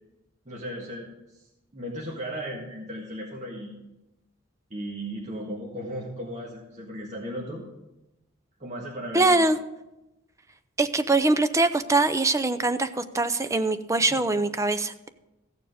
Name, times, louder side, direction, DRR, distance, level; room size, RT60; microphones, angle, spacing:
voice 1, 0.4-1.1 1.3-1.5 1.7-3.8 4.7-7.6 8.6-9.4 14.0-14.2, equal, 35° right, -3 dB, 1.7 m, -36 dB
voice 2, 9.1-9.6 10.8-15.1, right 2 dB, 15° right, 11 dB, 0.5 m, -23 dB
15.0 x 7.0 x 5.0 m, 0.97 s
head